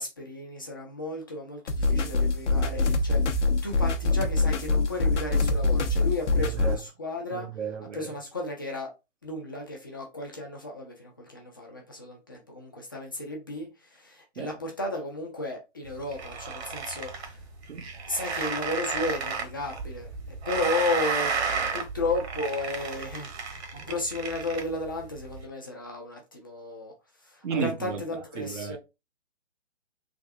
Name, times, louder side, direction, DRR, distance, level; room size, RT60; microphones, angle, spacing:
voice 1, 0.0-7.5 7.9-8.9 9.2-17.4 18.1-20.1 20.5-21.3 21.7-26.9 27.2-28.8, left 2 dB, 20° left, 0.3 m, -34 dB
sound 1, 1.7-6.8, left 3 dB, 75° left, 0.7 m, -24 dB
voice 2, 6.4-6.8 7.3-8.1 14.4-14.5 17.7-17.9 27.4-28.0 28.4-28.8, right 7 dB, 80° right, 0.6 m, -33 dB
sound 2, 15.9-25.4, right 5 dB, 60° right, 1.0 m, -33 dB
3.5 x 2.6 x 2.3 m
figure-of-eight pair, 130°, 36 cm